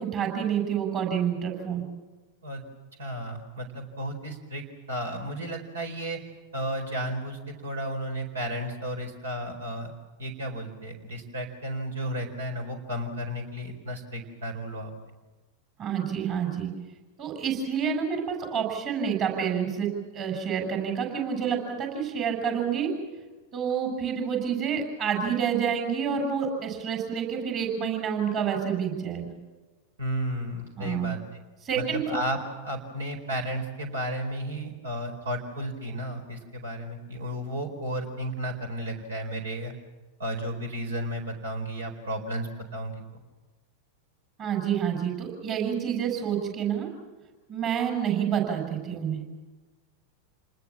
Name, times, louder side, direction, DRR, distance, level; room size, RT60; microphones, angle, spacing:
voice 1, 0.0-1.9 15.8-16.7 17.2-22.9 23.5-29.3 30.8-31.1 31.7-32.2 44.4-46.9 47.5-49.2, right 7 dB, 35° right, 4 dB, 7.0 m, -28 dB
voice 2, 3.0-6.2 6.5-9.9 10.2-14.9 30.0-31.4 31.7-32.4 32.6-39.7 40.2-43.0, right 1 dB, 70° right, 5 dB, 4.5 m, -33 dB
28.5 x 20.5 x 7.5 m, 1.2 s
figure-of-eight pair, 90°, 0 cm